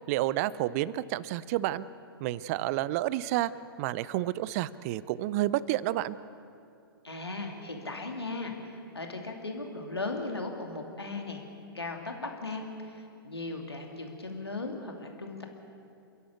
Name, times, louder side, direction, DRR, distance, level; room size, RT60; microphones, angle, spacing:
voice 1, 0.1-1.8 2.2-3.5 3.8-6.2, right 15 dB, 40° right, 18 dB, 0.7 m, -30 dB
voice 2, 7.0-11.4 11.7-15.5, left 3 dB, 90° left, 3 dB, 2.8 m, -37 dB
30.0 x 11.5 x 8.4 m, 2.5 s
figure-of-eight pair, 115°, 13 cm